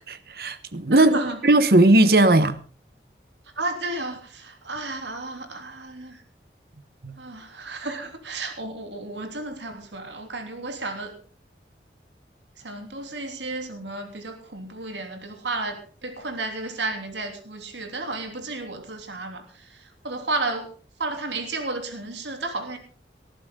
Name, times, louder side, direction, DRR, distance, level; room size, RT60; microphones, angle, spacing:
voice 1, 0.0-1.2 1.4-2.6 7.0-7.1, right 2 dB, 55° right, 1.2 m, -18 dB
voice 2, 0.9-1.4 3.6-6.2 7.2-11.1 12.6-19.4 20.0-20.7 21.0-22.8, right 2 dB, 85° right, 3.2 m, -32 dB
19.0 x 14.0 x 3.8 m
head